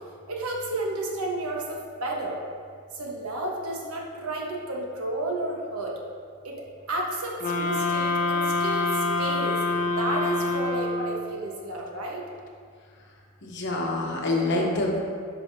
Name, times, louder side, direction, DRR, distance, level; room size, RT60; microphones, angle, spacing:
voice 1, 0.3-2.4 3.0-5.9 6.4-6.5 6.9-8.9 9.2-9.6 10.0-12.2, right 2 dB, 85° right, -1 dB, 1.2 m, -31 dB
sound 1, 7.4-11.3, left 2 dB, 40° left, 0.7 m, -26 dB
voice 2, 13.4-15.0, left 2 dB, 55° left, -1 dB, 1.0 m, -26 dB
10.0 x 5.8 x 2.7 m, 2.1 s
head